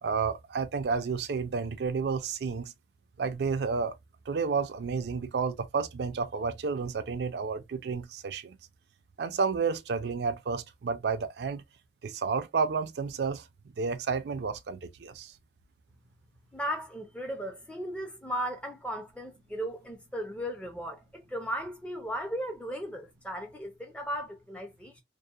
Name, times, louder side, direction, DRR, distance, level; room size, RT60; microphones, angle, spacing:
voice 1, 0.0-2.7 3.2-4.0 4.3-8.6 9.2-11.6 12.0-13.5 13.8-15.3, right 5 dB, 65° right, 0.4 m, -31 dB
voice 2, 16.5-25.0, equal, 5° left, 0.4 m, -36 dB
2.7 x 2.0 x 2.3 m
head